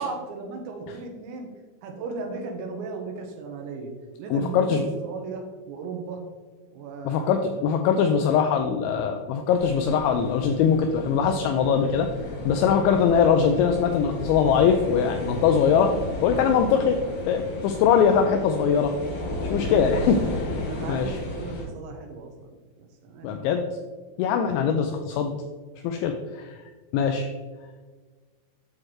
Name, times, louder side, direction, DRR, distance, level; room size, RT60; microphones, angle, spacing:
voice 1, 0.0-1.5 1.8-3.9 4.2-6.2 6.7-7.6 8.2-8.4 20.6-23.3 24.5-24.6, right 4 dB, 75° right, 3 dB, 3.0 m, -36 dB
voice 2, 4.3-4.8 7.1-12.1 12.4-15.9 16.2-17.0 17.3-18.9 19.5-20.5 20.9-21.2 23.2-23.7 24.2-25.3 25.8-26.5 26.9-27.3, left 7 dB, 90° left, 5 dB, 2.6 m, -22 dB
sound 1, 9.6-21.7, left 1 dB, 60° left, 4.5 m, -33 dB
8.9 x 6.4 x 3.2 m, 1.4 s
omnidirectional pair, 5.9 m